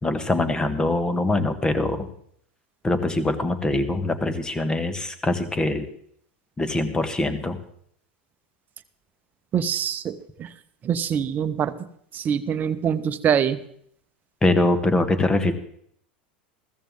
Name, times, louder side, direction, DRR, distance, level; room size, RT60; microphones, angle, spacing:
voice 1, 0.0-2.1 2.8-5.9 6.6-7.6 14.4-15.5, left 2 dB, 15° left, 11 dB, 1.4 m, -23 dB
voice 2, 9.5-10.5 10.8-11.7 12.1-13.6, right 8 dB, 35° right, 10 dB, 0.9 m, -24 dB
15.0 x 14.5 x 3.8 m, 0.66 s
hypercardioid pair, 100°, 5 cm